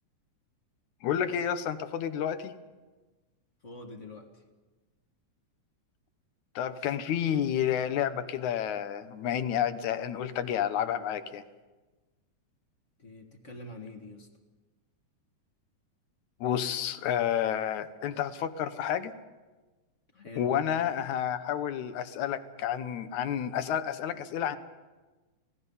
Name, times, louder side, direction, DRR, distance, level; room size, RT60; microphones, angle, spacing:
voice 1, 1.0-2.6 6.6-11.4 16.4-19.1 20.4-24.6, left 9 dB, 70° left, 11 dB, 2.2 m, -30 dB
voice 2, 3.6-4.4 13.0-14.3 20.1-20.5 24.1-24.2, left 2 dB, 30° left, 4 dB, 1.4 m, -45 dB
26.0 x 18.0 x 5.5 m, 1.2 s
omnidirectional pair, 3.7 m